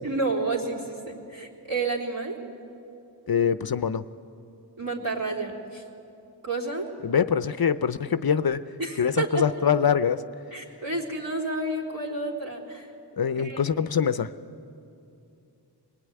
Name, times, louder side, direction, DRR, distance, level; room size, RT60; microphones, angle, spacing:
voice 1, 0.0-2.4 4.8-5.8 6.4-6.9 8.8-9.5 10.5-12.9 13.3-13.6, right 3 dB, 55° right, -4 dB, 3.8 m, -30 dB
voice 2, 3.3-4.0 7.0-8.6 9.0-10.2 13.2-14.3, left 7 dB, 60° left, 13 dB, 0.7 m, -24 dB
22.5 x 20.5 x 9.5 m, 2.7 s
wide cardioid pair, 75°, 42 cm